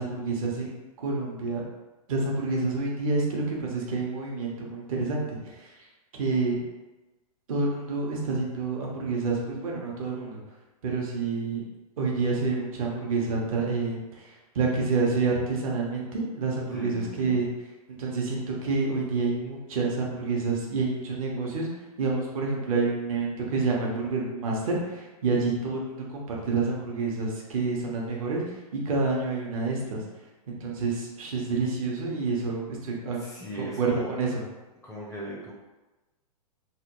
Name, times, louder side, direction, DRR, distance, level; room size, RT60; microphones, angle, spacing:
voice 1, 0.0-1.6 2.1-5.7 6.1-6.6 7.5-10.4 10.8-11.6 12.0-17.5 18.0-21.7 22.0-28.5 28.8-30.0 30.5-33.2 33.6-34.4, right 3 dB, 60° right, -2 dB, 0.9 m, -28 dB
voice 2, 16.7-17.4 33.1-34.1 34.8-35.5, equal, ahead, -4 dB, 0.4 m, -38 dB
3.3 x 2.2 x 2.9 m, 1.1 s
hypercardioid pair, 125°, 20 cm